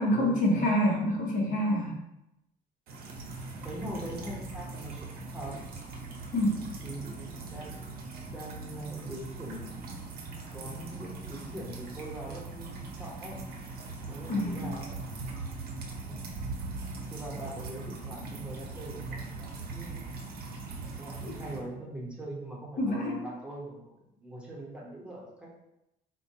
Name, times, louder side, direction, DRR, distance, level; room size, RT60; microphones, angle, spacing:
voice 1, 0.0-2.0 6.3-6.7 14.3-14.8 22.8-23.2, left 1 dB, 50° left, -2 dB, 1.0 m, -27 dB
sound 1, 2.9-21.6, right 3 dB, 65° right, 0.7 m, -40 dB
voice 2, 3.6-5.6 6.8-7.8 8.2-10.0 10.5-13.4 14.1-15.0 16.0-16.4 17.1-20.1 20.9-23.9 24.2-25.6, right 1 dB, 5° right, -5 dB, 1.0 m, -42 dB
4.2 x 2.2 x 2.8 m, 0.86 s
cardioid pair, 110°, 17 cm